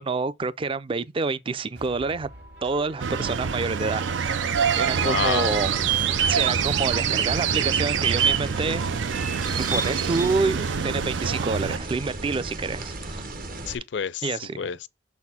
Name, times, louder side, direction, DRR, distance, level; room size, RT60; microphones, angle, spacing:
voice 1, 0.0-2.3 2.6-4.4 4.8-5.7 6.3-8.8 9.6-13.2 14.2-14.7, right 4 dB, 30° right, 0.4 m, -28 dB
sound 1, 1.7-7.7, right 1 dB, 65° right, 2.0 m, -45 dB
sound 2, 3.0-11.8, right 7 dB, 90° right, 0.5 m, -25 dB
voice 2, 5.0-5.6 13.7-14.9, left 7 dB, 70° left, 0.4 m, -29 dB
sound 3, 5.5-13.8, right 2 dB, 50° right, 0.9 m, -35 dB
6.6 x 4.2 x 4.2 m
head